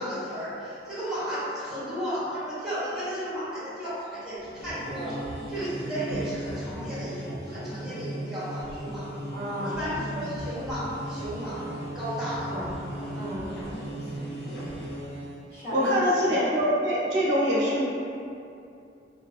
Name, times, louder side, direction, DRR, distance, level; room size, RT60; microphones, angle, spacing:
voice 1, 0.0-5.2 5.5-9.1 9.6-11.6 11.9-12.5 13.0-13.1 14.4-14.7, equal, 5° right, -13 dB, 0.9 m, -34 dB
sound 1, 4.4-15.4, right 1 dB, 65° left, 0.4 m, -36 dB
voice 2, 9.3-10.4 12.5-12.8 13.1-13.6 13.9-14.3 15.5-16.2, equal, 35° left, -11 dB, 0.7 m, -36 dB
voice 3, 15.7-17.8, equal, 75° right, -7 dB, 0.6 m, -23 dB
2.4 x 2.1 x 2.4 m, 2.6 s
head